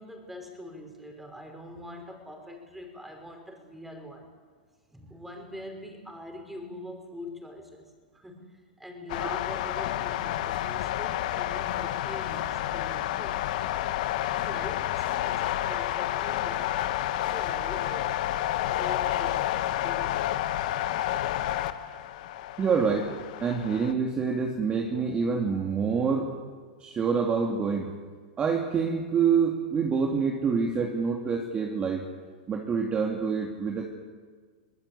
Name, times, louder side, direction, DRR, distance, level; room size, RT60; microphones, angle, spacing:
voice 1, 0.0-4.3 4.9-7.9 8.2-13.4 14.2-16.8 17.3-18.2 18.6-19.5 19.8-20.2, left 1 dB, 5° right, 3 dB, 5.4 m, -43 dB
sound 1, 9.1-23.9, left 13 dB, 60° left, 1.4 m, -30 dB
voice 2, 22.6-23.1 23.4-26.3 26.8-27.9 28.4-32.0 32.5-33.9, right 5 dB, 25° right, 1 dB, 2.5 m, -26 dB
24.0 x 19.5 x 8.4 m, 1.6 s
hypercardioid pair, 120°, 5 cm